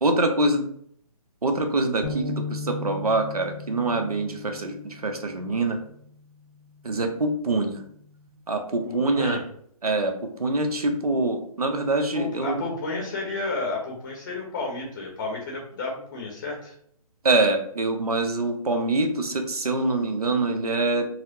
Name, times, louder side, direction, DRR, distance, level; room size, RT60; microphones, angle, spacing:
voice 1, 0.0-0.7 1.4-5.8 6.8-7.8 8.5-9.4 9.8-12.6 17.2-21.1, right 2 dB, 90° right, 5 dB, 0.7 m, -25 dB
sound 1, 2.0-8.3, left 2 dB, 80° left, 0.7 m, -38 dB
voice 2, 8.9-9.4 12.1-16.7, left 3 dB, 35° left, -1 dB, 0.7 m, -31 dB
4.1 x 2.0 x 2.7 m, 0.66 s
figure-of-eight pair, 150°, 19 cm